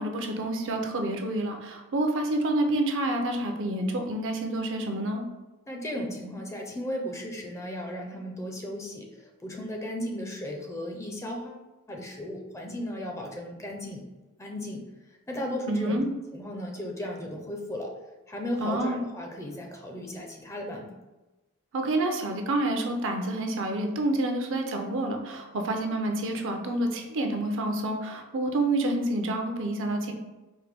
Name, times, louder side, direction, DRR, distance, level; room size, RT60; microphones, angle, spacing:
voice 1, 0.0-5.2 15.7-16.1 18.6-19.0 21.7-30.1, right 1 dB, 60° right, 4 dB, 0.5 m, -28 dB
voice 2, 5.7-11.6 11.9-14.1 14.4-14.9 15.3-16.0 16.3-17.9 18.3-20.9, left 1 dB, 15° left, 1 dB, 0.4 m, -35 dB
4.4 x 2.1 x 3.4 m, 1.1 s
head